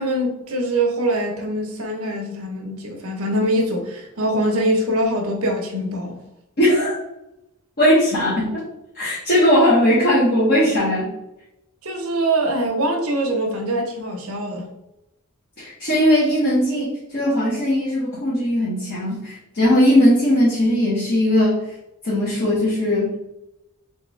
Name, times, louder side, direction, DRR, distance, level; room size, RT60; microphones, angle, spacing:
voice 1, 0.0-6.2 11.8-14.6, right 1 dB, 80° right, 0.9 m, -23 dB
voice 2, 6.6-7.0 7.8-8.6 8.9-11.1 15.6-21.7 22.0-23.1, equal, 50° left, 1.3 m, -18 dB
3.6 x 3.5 x 3.2 m
head